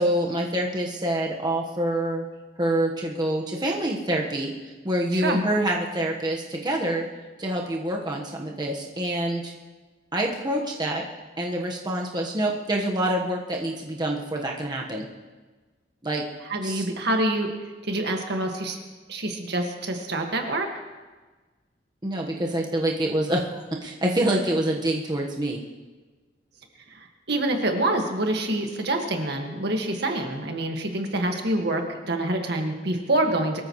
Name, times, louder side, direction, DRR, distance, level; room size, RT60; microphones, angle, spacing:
voice 1, 0.0-2.3 2.6-7.1 7.4-9.5 10.1-11.1 11.4-15.1 16.0-16.2 16.6-16.8 22.0-25.6, right 1 dB, 25° right, -1 dB, 1.3 m, -26 dB
voice 2, 5.1-5.5 16.5-17.5 17.8-18.8 19.1-20.7 27.3-33.6, right 1 dB, 65° right, 3 dB, 1.8 m, -26 dB
23.0 x 14.5 x 3.2 m, 1.3 s
head